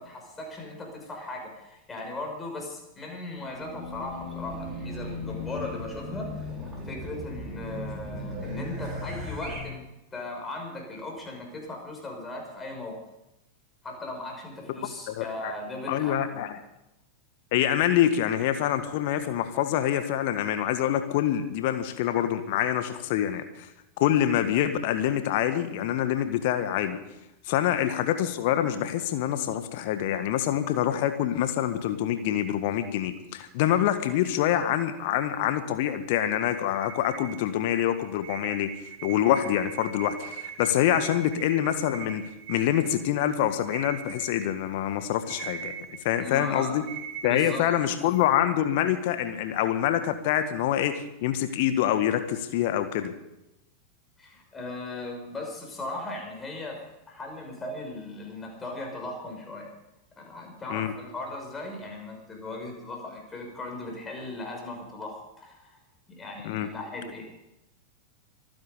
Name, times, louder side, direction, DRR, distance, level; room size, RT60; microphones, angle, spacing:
voice 1, 0.0-6.5 6.8-9.8 10.1-13.0 13.8-16.6 46.2-46.7 47.2-47.6 54.2-59.7 60.2-65.8 66.1-67.2, left 2 dB, 15° left, 1 dB, 5.7 m, -38 dB
Race car auto racing / Alarm, 3.4-9.6, left 1 dB, 20° right, 5.5 m, -37 dB
voice 2, 15.1-15.5 15.9-16.6 17.5-23.7 24.0-27.0 27.5-38.7 39.0-46.8 47.2-53.1 60.7-60.9 66.4-66.7, left 11 dB, 50° left, 9 dB, 1.7 m, -26 dB
sound 1, 36.7-48.3, right 8 dB, 50° right, 3.7 m, -42 dB
25.0 x 9.8 x 5.3 m, 0.89 s
figure-of-eight pair, 90°, 0 cm